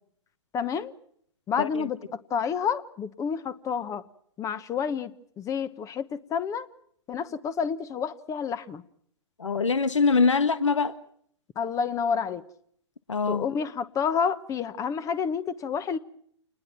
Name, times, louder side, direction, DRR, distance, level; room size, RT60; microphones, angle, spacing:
voice 1, 0.5-0.9 1.5-4.0 4.4-5.1 5.4-6.7 7.1-8.8 11.6-12.4 13.3-16.0, left 6 dB, 20° left, 14 dB, 1.1 m, -29 dB
voice 2, 1.6-1.9 9.4-10.9 13.1-13.4, left 4 dB, 85° left, 12 dB, 1.5 m, -23 dB
28.5 x 20.5 x 6.0 m, 0.66 s
hypercardioid pair, 120°, 15 cm